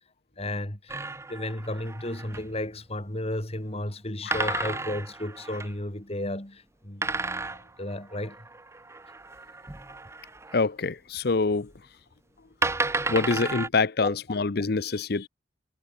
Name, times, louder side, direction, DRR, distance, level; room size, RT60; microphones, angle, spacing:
voice 1, 0.4-1.0 1.3-7.1 7.8-8.5 14.0-14.2, left 1 dB, 35° left, 3.7 m, -33 dB
sound 1, 0.9-2.6 4.3-5.7 7.0-10.6 11.8-11.9 12.6-13.7, right 3 dB, 15° right, 0.7 m, -33 dB
voice 2, 4.3-4.7 10.5-11.7 13.1-15.3, left 4 dB, 60° left, 0.7 m, -26 dB
head